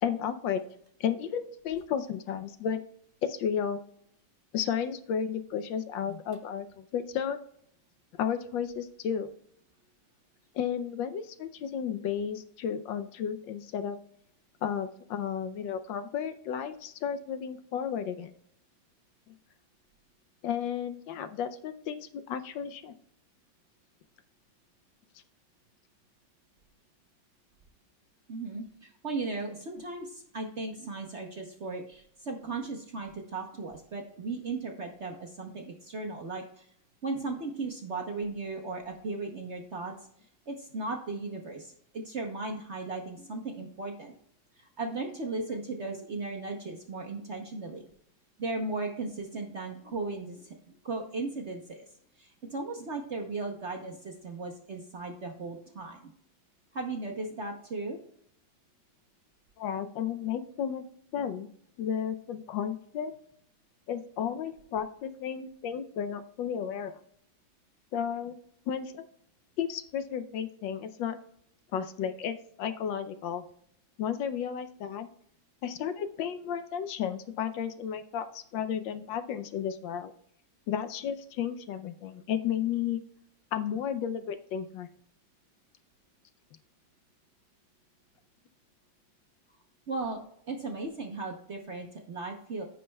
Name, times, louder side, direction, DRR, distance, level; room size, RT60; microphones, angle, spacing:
voice 1, 0.0-0.6 1.0-2.8 3.2-3.8 4.5-7.4 8.2-9.3 10.5-14.0 14.6-18.3 20.4-22.9 59.6-60.8 61.1-61.5 61.8-63.1 63.9-66.9 67.9-68.4 68.7-69.0 69.6-71.2 71.7-73.4 74.0-75.1 75.6-80.1 80.7-83.0 83.5-84.9, left 8 dB, 75° left, 10 dB, 1.3 m, -33 dB
voice 2, 28.3-36.7 37.0-39.9 40.5-44.1 44.6-47.8 48.4-51.8 52.2-56.1 56.7-58.0 89.9-90.2 90.5-92.6, right 3 dB, 50° right, 2 dB, 0.9 m, -36 dB
15.0 x 5.4 x 2.3 m, 0.67 s
omnidirectional pair, 2.1 m